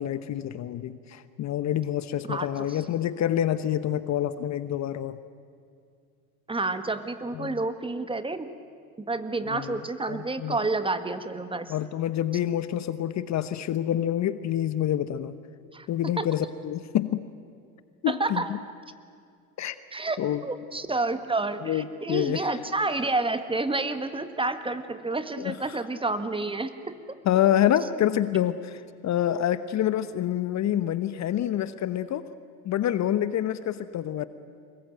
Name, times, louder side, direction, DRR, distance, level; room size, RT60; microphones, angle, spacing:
voice 1, 0.0-5.2 7.3-7.6 9.5-9.8 10.1-10.6 11.7-15.4 15.9-17.2 18.0-18.6 19.6-19.8 20.2-20.4 21.6-22.5 25.4-25.6 27.2-32.3 32.6-34.3, left 11 dB, 40° left, 14 dB, 1.0 m, -27 dB
voice 2, 2.3-2.8 6.5-8.5 9.1-11.7 15.7-16.3 18.1-18.5 19.9-26.9, right 3 dB, 10° right, 10 dB, 1.6 m, -29 dB
25.0 x 21.5 x 9.3 m, 2.3 s
hypercardioid pair, 85°, 43 cm